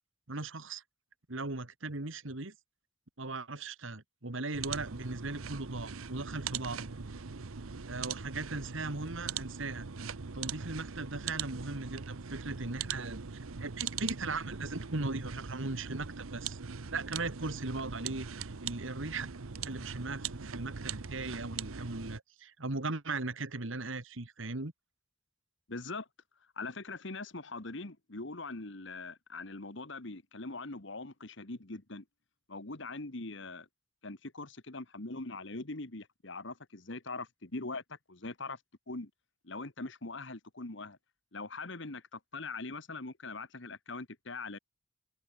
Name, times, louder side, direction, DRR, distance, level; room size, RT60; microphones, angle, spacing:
voice 1, 0.3-0.8 1.3-2.5 3.2-6.9 7.9-9.9 10.3-16.6 16.9-19.3 19.7-24.7, right 3 dB, 70° right, 1.9 m, -38 dB
sound 1, 4.5-22.2, right 6 dB, 90° right, 0.9 m, -41 dB
voice 2, 25.7-26.1 26.6-32.0 32.5-33.7 34.0-38.6 38.9-39.1 39.4-41.0 41.3-44.6, left 3 dB, 60° left, 1.7 m, -42 dB
open air
head